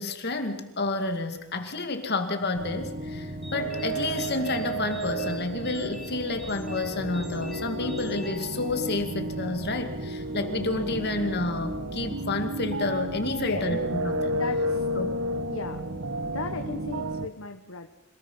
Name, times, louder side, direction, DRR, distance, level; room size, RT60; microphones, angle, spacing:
voice 1, 0.0-14.4 15.0-15.2, left 2 dB, 50° left, 6 dB, 2.4 m, -30 dB
sound 1, 2.5-17.3, equal, 40° right, 1.1 m, -39 dB
sound 2, 3.4-9.2, left 1 dB, ahead, 4.7 m, -47 dB
sound 3, 3.5-17.3, right 1 dB, 80° right, 1.4 m, -33 dB
voice 2, 13.3-13.7 14.3-15.1 15.5-15.8 16.2-17.9, left 4 dB, 75° left, 6 dB, 1.3 m, -36 dB
27.0 x 19.5 x 5.7 m, 0.92 s
head